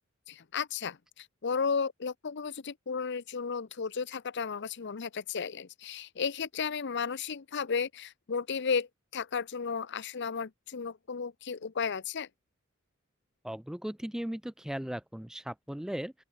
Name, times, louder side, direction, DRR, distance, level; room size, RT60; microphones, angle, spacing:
voice 1, 0.3-12.3, left 5 dB, 60° left, 0.7 m, -34 dB
voice 2, 13.4-16.1, equal, 5° right, 0.3 m, -37 dB
open air
head